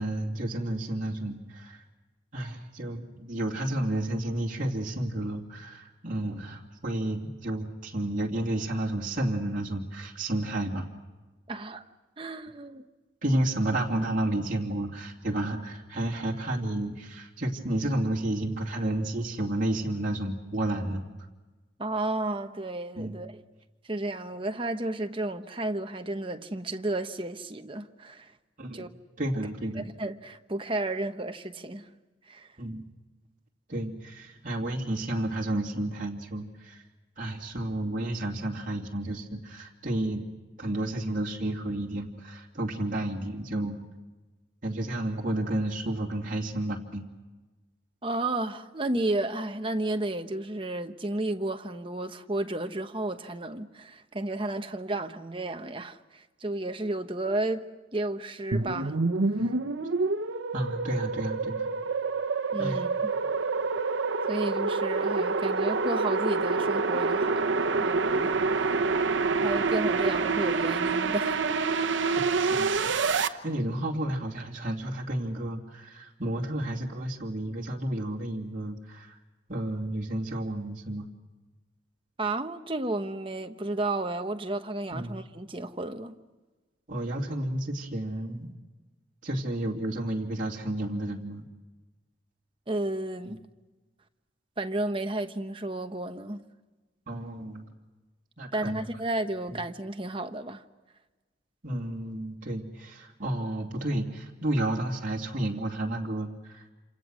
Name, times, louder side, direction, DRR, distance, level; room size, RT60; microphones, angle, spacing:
voice 1, 0.0-1.8 2.3-10.9 13.2-21.0 22.9-23.2 28.6-28.9 29.2-29.9 32.6-32.8 33.7-36.8 37.2-40.3 40.6-43.8 44.6-47.1 59.4-59.5 60.5-61.7 62.6-62.8 72.4-72.8 73.2-79.2 79.5-81.1 84.9-85.2 86.9-88.5 89.2-91.5 93.2-93.4 97.1-97.7 98.4-98.8 99.5-99.6 101.6-106.6, right 1 dB, 40° right, 2.6 m, -31 dB
voice 2, 11.5-11.8 12.2-12.8 21.8-23.3 23.9-28.3 28.7-28.9 29.8-31.9 32.3-32.5 48.0-57.6 57.9-59.0 59.4-59.5 62.5-63.1 64.3-68.9 69.4-71.8 82.2-86.1 92.7-93.4 94.6-96.4 98.5-100.6, right 2 dB, 25° right, 1.1 m, -32 dB
sound 1, 58.5-73.3, right 4 dB, 75° right, 1.0 m, -27 dB
28.5 x 27.5 x 6.3 m
head